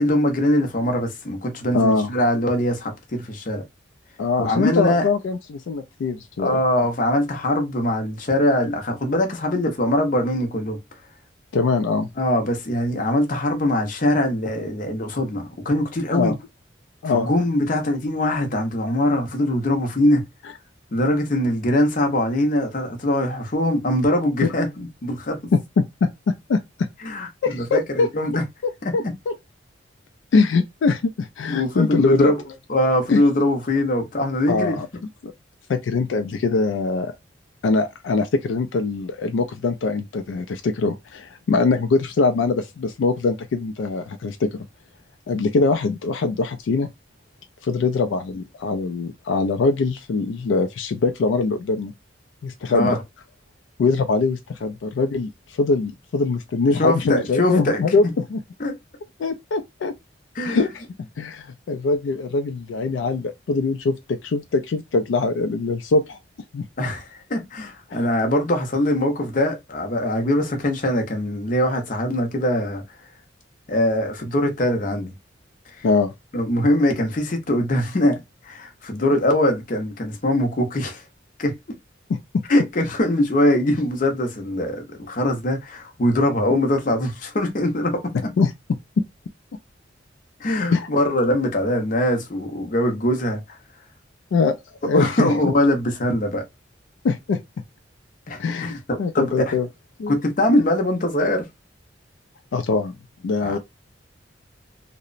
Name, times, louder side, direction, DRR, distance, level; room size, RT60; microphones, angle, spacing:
voice 1, 0.0-3.6 4.4-5.1 6.4-10.8 12.2-16.3 17.0-20.2 20.9-25.4 27.0-28.4 28.8-29.1 31.5-32.4 32.7-34.8 52.7-53.0 56.8-57.8 58.6-58.7 60.4-60.7 66.8-72.8 73.7-75.1 75.8-75.9 76.3-81.0 81.4-81.6 82.5-88.1 90.4-93.4 94.9-96.4 98.3-99.5 100.1-101.4 103.4-103.6, left 1 dB, 45° left, 0.6 m, -22 dB
voice 2, 1.7-2.1 4.2-6.6 11.5-12.1 16.1-16.4 17.0-17.3 24.4-24.5 25.5-26.9 27.4-28.1 28.6-29.3 30.3-32.3 33.1-33.2 34.5-34.9 35.2-35.3 35.7-37.1 37.6-44.6 45.3-46.9 47.6-51.9 52.4-53.0 53.8-58.4 59.2-59.9 60.4-60.8 61.2-66.2 66.5-66.7 67.9-68.1 75.8-76.1 82.1-82.4 88.4-88.5 90.7-90.9 94.3-94.6 94.8-95.5 97.0-97.4 98.4-98.7 99.0-99.7 100.0-100.2 102.5-102.9 103.2-103.6, left 4 dB, 80° left, 0.3 m, -22 dB
2.8 x 2.0 x 2.4 m
head